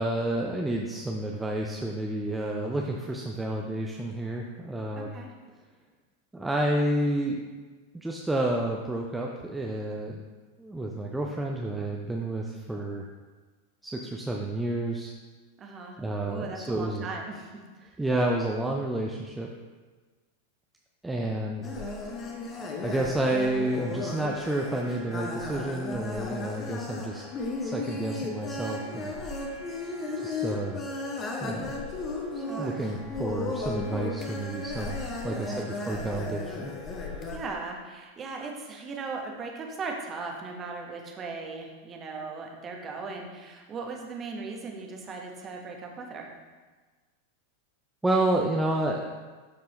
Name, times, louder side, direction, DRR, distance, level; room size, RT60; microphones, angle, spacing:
voice 1, 0.0-5.1 6.3-7.4 7.9-10.2 10.6-13.0 13.8-15.2 16.0-17.1 18.0-19.5 21.0-21.7 22.8-27.2 27.6-29.1 30.2-30.8 31.4-31.7 32.6-35.0 35.2-36.7 48.0-49.0, right 1 dB, 5° right, 0 dB, 0.6 m, -30 dB
voice 2, 4.9-5.3 15.6-16.0 16.3-18.0 32.3-32.9 35.3-35.7 37.3-46.3, right 4 dB, 25° right, 1 dB, 1.2 m, -38 dB
sound 1, 21.6-37.4, left 2 dB, 25° left, 1.0 m, -35 dB
12.0 x 4.4 x 3.2 m, 1.4 s
figure-of-eight pair, 90°, 0 cm